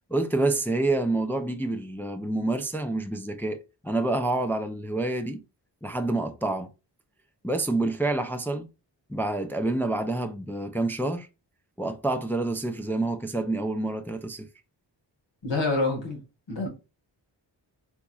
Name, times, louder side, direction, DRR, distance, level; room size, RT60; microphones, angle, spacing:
voice 1, 0.1-5.4 5.8-6.7 7.4-8.7 9.1-11.3 11.8-14.5, right 2 dB, 5° left, 0.3 m, -28 dB
voice 2, 15.4-16.2 16.5-16.7, left 3 dB, 80° left, 1.6 m, -26 dB
3.4 x 2.9 x 2.3 m
cardioid pair, 60°, 44 cm